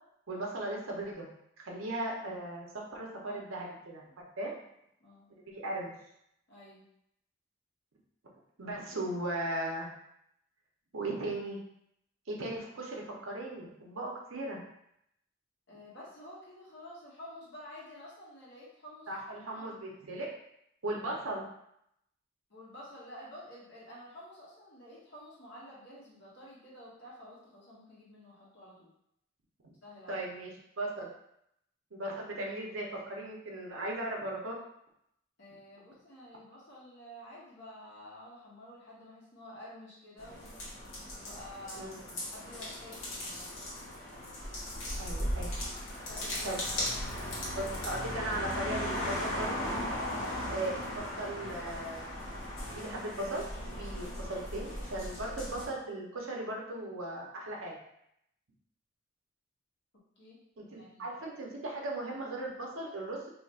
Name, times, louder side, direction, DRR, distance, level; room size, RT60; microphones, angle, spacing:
voice 1, 0.3-1.3 1.6-2.7 2.9-4.0 4.4-4.5 5.5-5.9 8.6-9.9 10.9-11.6 12.3-14.6 19.1-20.3 20.8-21.5 30.1-30.5 30.8-31.1 31.9-34.6 41.8-42.0 45.0-45.5 46.4-46.6 47.5-49.7 50.4-52.2 52.7-57.8 60.6-63.2, right 1 dB, 80° right, -1 dB, 0.8 m, -37 dB
voice 2, 6.5-6.8 15.7-20.0 22.5-28.9 29.8-30.2 35.4-40.5 41.1-41.9 42.3-43.7 46.0-47.5 50.0-50.4 60.2-60.4 60.8-61.1, left 1 dB, 55° left, -7 dB, 1.3 m, -50 dB
sound 1, 40.2-55.7, left 1 dB, 75° left, 1.2 m, -37 dB
2.8 x 2.4 x 4.1 m, 0.77 s
head